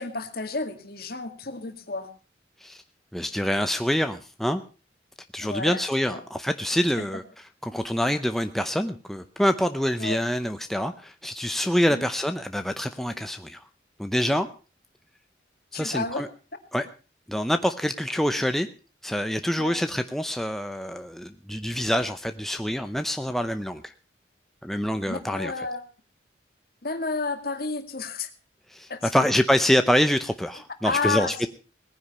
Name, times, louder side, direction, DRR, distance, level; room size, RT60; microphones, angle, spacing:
voice 1, 0.0-2.1 5.4-5.8 6.1-6.2 7.0-7.1 10.0-10.2 11.9-12.0 15.7-16.2 19.6-19.8 25.1-25.8 26.8-28.3 28.9-29.1 30.8-31.3, left 3 dB, 55° left, 7 dB, 2.0 m, -31 dB
voice 2, 3.1-4.6 5.3-7.2 7.6-13.6 14.0-14.5 15.7-16.3 16.7-16.9 17.3-18.7 19.0-23.9 24.6-25.5 28.7-31.5, equal, ahead, 7 dB, 0.6 m, -26 dB
18.5 x 10.0 x 5.5 m, 0.36 s
head